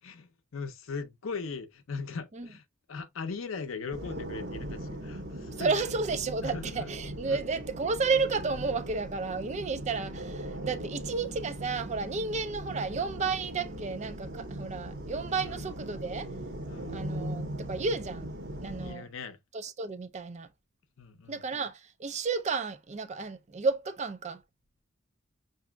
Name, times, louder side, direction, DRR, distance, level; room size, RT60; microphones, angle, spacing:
voice 1, 0.0-2.6 2.9-5.7 6.4-6.9 7.3-7.4 15.4-15.6 16.7-17.0 18.8-19.4 21.0-21.4, left 4 dB, 70° left, 0.6 m, -39 dB
sound 1, 3.9-18.9, right 1 dB, 55° right, 1.3 m, -39 dB
voice 2, 5.6-16.3 16.9-18.3 18.6-19.1 19.5-20.5 21.3-24.4, right 4 dB, 35° right, 0.4 m, -32 dB
5.9 x 2.6 x 2.2 m
head